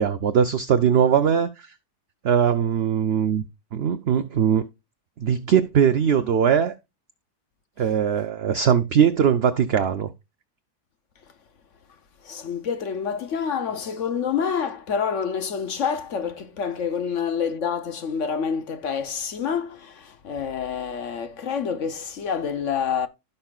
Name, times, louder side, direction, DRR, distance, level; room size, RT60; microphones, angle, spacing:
voice 1, 0.0-1.7 2.2-3.4 3.7-4.7 5.2-6.7 7.8-10.1, right 8 dB, 60° right, 0.7 m, -20 dB
voice 2, 12.2-23.1, left 7 dB, 60° left, 1.0 m, -27 dB
15.5 x 5.5 x 2.4 m
omnidirectional pair, 1.7 m